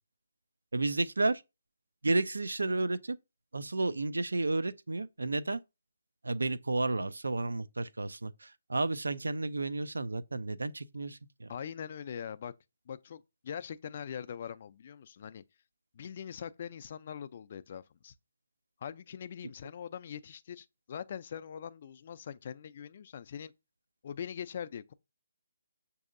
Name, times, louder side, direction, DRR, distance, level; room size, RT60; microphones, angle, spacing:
voice 1, 0.7-1.4 2.0-3.2 3.5-5.6 6.2-11.5, right 2 dB, 85° right, 0.3 m, -32 dB
voice 2, 11.5-12.5 12.9-15.4 15.9-18.1 18.8-23.5 24.0-24.9, left 8 dB, 45° left, 0.3 m, -42 dB
6.3 x 2.7 x 2.5 m
figure-of-eight pair, 150°, 0 cm